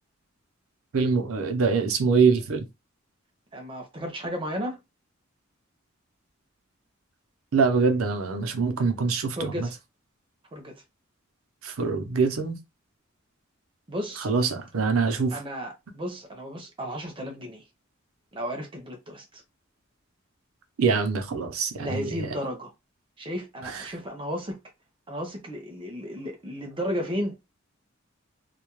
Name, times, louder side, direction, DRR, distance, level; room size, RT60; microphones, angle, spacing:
voice 1, 0.9-2.6 7.5-9.7 11.6-12.6 14.2-15.4 20.8-22.3 23.6-23.9, right 5 dB, 85° right, 0.6 m, -24 dB
voice 2, 3.5-4.8 9.4-9.7 10.5-10.7 13.9-14.3 15.3-17.6 18.3-19.4 21.8-22.7 23.2-24.6 25.1-27.5, equal, 25° right, 0.6 m, -33 dB
2.2 x 2.1 x 2.9 m
head